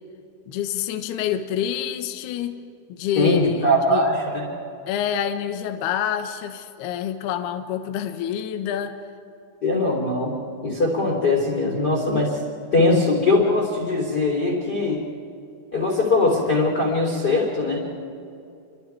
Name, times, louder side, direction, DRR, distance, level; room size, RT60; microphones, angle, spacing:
voice 1, 0.5-2.6 2.9-4.1 4.9-9.0, left 9 dB, 70° left, 6 dB, 2.7 m, -27 dB
voice 2, 3.1-4.5 9.6-10.3 10.6-12.3 12.7-15.0 15.7-17.8, left 2 dB, 25° left, -2 dB, 3.3 m, -21 dB
29.5 x 25.0 x 4.7 m, 2.6 s
omnidirectional pair, 5.6 m